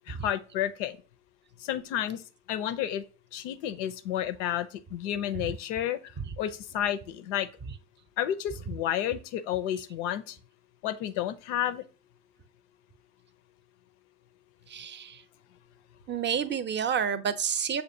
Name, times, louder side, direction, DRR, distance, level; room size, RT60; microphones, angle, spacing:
voice 1, 0.1-1.0 1.6-2.2 2.5-3.0 3.3-7.5 8.2-10.4 10.8-11.8, left 11 dB, 85° left, 0.5 m, -31 dB
voice 2, 14.7-15.2 16.1-17.8, right 7 dB, 30° right, 0.5 m, -30 dB
6.5 x 2.5 x 2.6 m
hypercardioid pair, 60°, 36 cm